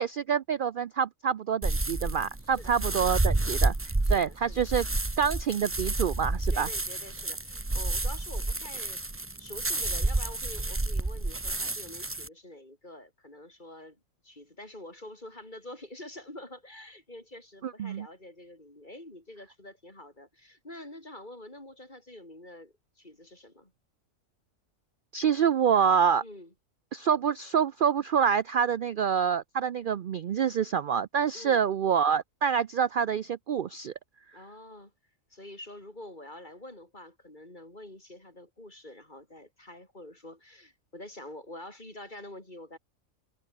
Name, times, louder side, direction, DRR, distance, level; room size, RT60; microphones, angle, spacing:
voice 1, 0.0-3.7 4.1-4.9 5.2-6.7 17.6-18.1 25.1-26.2 26.9-33.9, right 7 dB, 60° right, 0.5 m, -26 dB
sound 1, 1.6-12.3, right 2 dB, 15° right, 0.6 m, -30 dB
voice 2, 2.5-3.1 4.0-4.7 6.5-9.0 9.4-23.7 26.2-26.5 31.3-31.7 34.3-34.9 35.3-42.8, left 1 dB, 35° left, 5.9 m, -47 dB
omnidirectional pair, 1.4 m